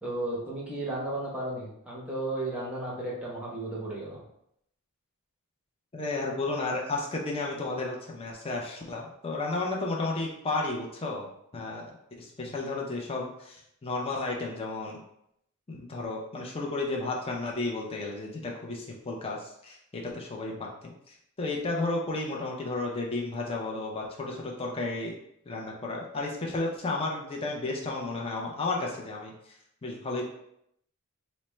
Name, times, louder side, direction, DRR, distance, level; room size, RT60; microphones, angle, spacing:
voice 1, 0.0-4.2, right 2 dB, 5° right, -5 dB, 0.8 m, -34 dB
voice 2, 5.9-11.3 11.5-11.8 12.2-15.0 15.7-25.1 25.5-30.3, left 2 dB, 25° left, -2 dB, 0.5 m, -33 dB
4.2 x 2.0 x 3.2 m, 0.75 s
head